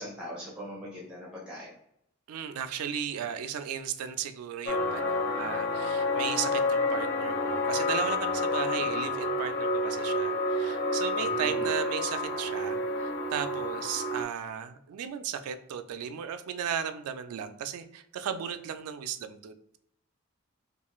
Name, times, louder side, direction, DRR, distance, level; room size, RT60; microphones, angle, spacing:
voice 1, 0.0-1.7 11.2-11.6, equal, 5° right, -5 dB, 0.6 m, -41 dB
voice 2, 2.3-19.8, right 8 dB, 85° right, 8 dB, 0.3 m, -35 dB
sound 1, 4.7-14.2, left 2 dB, 50° left, 0.4 m, -29 dB
2.4 x 2.3 x 2.9 m, 0.73 s
head